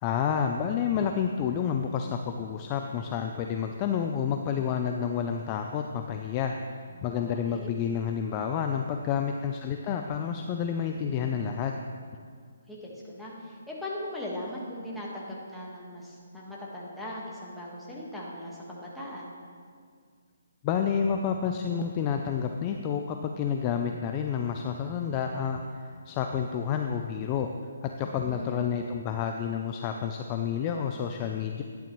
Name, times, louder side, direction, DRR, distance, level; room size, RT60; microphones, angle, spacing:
voice 1, 0.0-11.7 20.6-27.5 27.8-31.6, left 7 dB, 25° left, 4 dB, 0.4 m, -29 dB
voice 2, 6.9-7.8 12.7-19.3 28.0-28.7, left 1 dB, ahead, -6 dB, 1.4 m, -39 dB
11.0 x 10.0 x 3.1 m, 2.1 s
hypercardioid pair, 160°, 0 cm